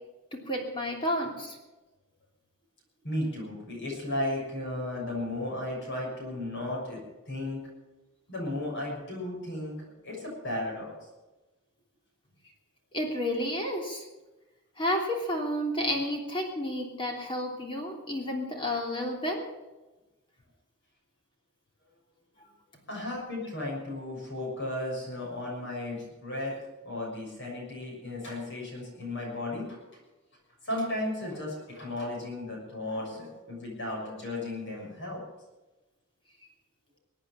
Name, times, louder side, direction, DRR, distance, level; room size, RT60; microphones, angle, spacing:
voice 1, 0.3-1.6 12.9-14.1 14.8-19.5 22.4-22.5, left 1 dB, 25° left, 1 dB, 3.1 m, -31 dB
voice 2, 3.0-7.6 8.3-9.7 10.0-10.9 22.9-26.5 26.8-30.0 30.6-35.2, left 1 dB, 55° left, -2 dB, 6.4 m, -35 dB
22.0 x 8.8 x 7.1 m, 1.1 s
head